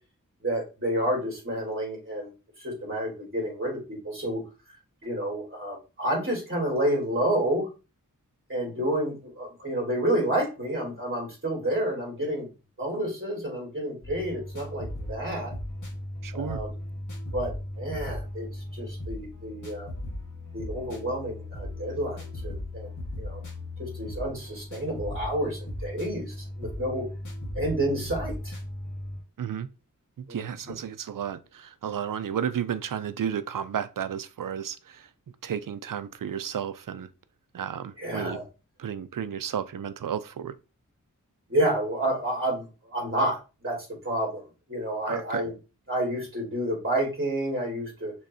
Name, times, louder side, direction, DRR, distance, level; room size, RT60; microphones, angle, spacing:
voice 1, 0.4-2.3 2.6-4.4 5.0-7.7 8.5-12.5 12.8-15.5 16.3-16.7 17.3-19.9 20.5-22.9 23.2-23.4 23.8-27.1 27.5-28.6 30.3-30.4 38.0-38.4 41.5-44.4 44.7-45.5 45.9-48.1, right 1 dB, 40° right, 3.0 m, -29 dB
sound 1, 14.0-29.2, left 1 dB, 65° left, 1.5 m, -37 dB
voice 2, 16.2-16.6 29.4-29.7 30.2-35.1 35.4-37.1 37.5-38.4 38.8-40.6 45.1-45.4, right 8 dB, 80° right, 0.5 m, -32 dB
6.3 x 3.1 x 2.7 m
wide cardioid pair, 70°, 32 cm